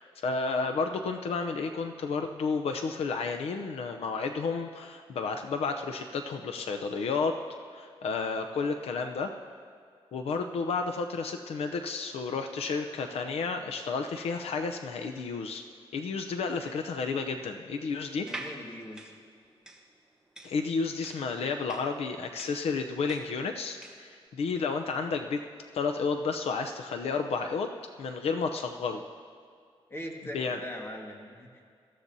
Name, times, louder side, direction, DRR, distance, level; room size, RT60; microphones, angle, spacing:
voice 1, 0.0-7.4 7.7-9.3 10.1-15.6 15.9-18.3 20.4-25.4 25.7-27.7 28.0-29.0 30.3-30.6, left 4 dB, 80° left, 5 dB, 0.6 m, -31 dB
voice 2, 18.2-19.1 29.9-31.7, equal, 25° left, 1 dB, 1.6 m, -41 dB
sound 1, 18.2-24.1, right 2 dB, 5° right, 1.1 m, -45 dB
20.5 x 14.5 x 2.7 m, 2.2 s
wide cardioid pair, 130°, 10 cm